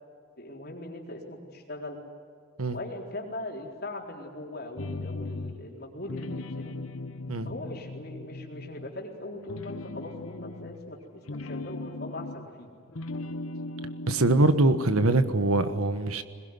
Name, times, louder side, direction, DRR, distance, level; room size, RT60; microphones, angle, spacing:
voice 1, 0.4-2.0 2.7-6.7 7.4-12.7, left 1 dB, 45° left, 0 dB, 4.1 m, -40 dB
sound 1, 4.8-5.7 6.0-9.1 9.4-12.6 12.9-15.6, left 2 dB, 80° left, 1.1 m, -38 dB
voice 2, 14.1-16.2, right 2 dB, 90° right, 11 dB, 1.4 m, -23 dB
21.5 x 21.0 x 9.7 m, 2.2 s
head